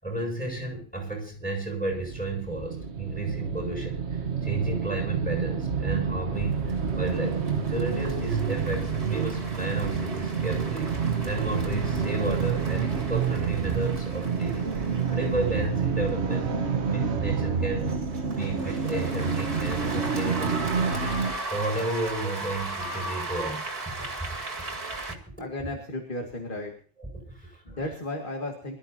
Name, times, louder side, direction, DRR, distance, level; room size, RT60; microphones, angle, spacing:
voice 1, 0.0-7.4 7.7-10.9 11.3-16.6 16.9-18.0 18.3-24.1 27.1-27.6, right 2 dB, 5° left, 0 dB, 7.2 m, -33 dB
sound 1, 1.9-21.4, right 6 dB, 65° right, 1.5 m, -28 dB
sound 2, 6.4-25.1, right 2 dB, 45° right, 2.6 m, -38 dB
voice 2, 25.4-26.8 27.6-28.8, left 1 dB, 45° left, 2 dB, 2.4 m, -34 dB
25.0 x 13.5 x 2.8 m, 0.43 s
omnidirectional pair, 1.2 m